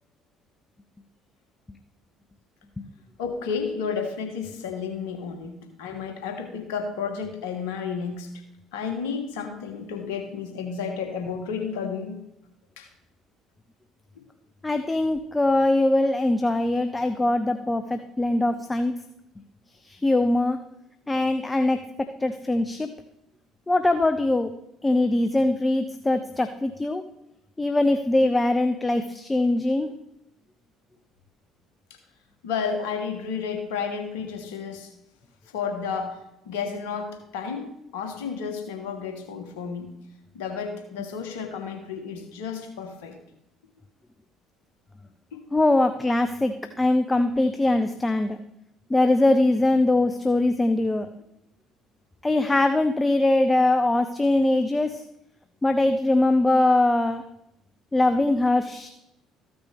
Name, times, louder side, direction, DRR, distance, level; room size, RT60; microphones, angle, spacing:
voice 1, 3.2-8.3 8.7-12.2 12.8-12.9 14.1-14.3 31.9-32.0 32.4-34.9 35.5-36.2 36.4-39.9 40.3-43.2 45.3-45.4, left 6 dB, 75° left, 5 dB, 1.3 m, -32 dB
voice 2, 14.6-18.9 19.8-20.6 21.1-22.9 23.7-24.5 24.8-27.0 27.6-29.9 45.5-48.4 48.9-51.1 52.2-55.0 55.6-57.2 57.9-58.9, left 2 dB, 15° left, 8 dB, 0.6 m, -22 dB
14.0 x 6.0 x 3.5 m, 0.81 s
hypercardioid pair, 55°, 0 cm